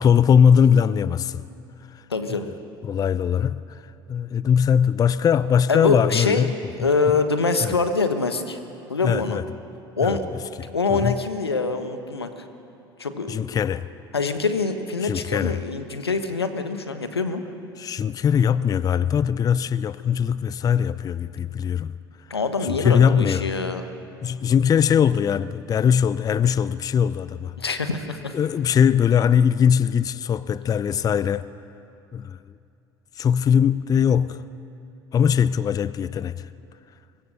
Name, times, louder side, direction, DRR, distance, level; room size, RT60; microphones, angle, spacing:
voice 1, 0.0-1.4 1.9-2.0 2.8-6.5 6.8-7.1 7.6-7.8 9.0-9.4 10.0-10.2 10.6-11.2 13.3-13.9 15.0-15.6 17.8-21.9 22.6-23.5 24.2-27.5 28.3-31.5 32.1-32.4 33.2-34.4 35.1-36.5, left 7 dB, 30° left, 0.6 m, -21 dB
voice 2, 2.1-2.5 5.7-6.5 6.8-8.6 8.9-9.4 10.0-10.2 10.7-12.3 13.0-13.3 14.1-17.4 22.3-23.8 27.6-28.3, left 4 dB, 85° left, 1.4 m, -24 dB
23.5 x 23.0 x 6.7 m
figure-of-eight pair, 70°, 13 cm